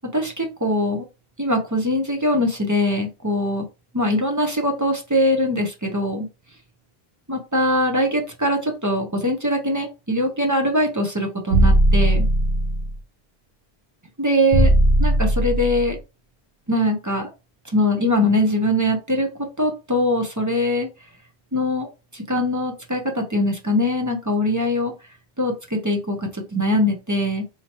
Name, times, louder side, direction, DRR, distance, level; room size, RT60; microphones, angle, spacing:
voice 1, 0.1-1.0 1.4-3.6 3.9-6.3 7.3-12.3 14.2-14.7 15.0-16.0 16.7-17.3 17.7-20.9 21.5-21.9 22.1-24.9 25.4-27.4, left 1 dB, 20° right, 2 dB, 0.6 m, -22 dB
sound 1, 11.5-13.0 14.5-16.0, right 1 dB, 85° right, 1.0 m, -18 dB
4.3 x 2.9 x 2.9 m, 0.30 s
omnidirectional pair, 1.0 m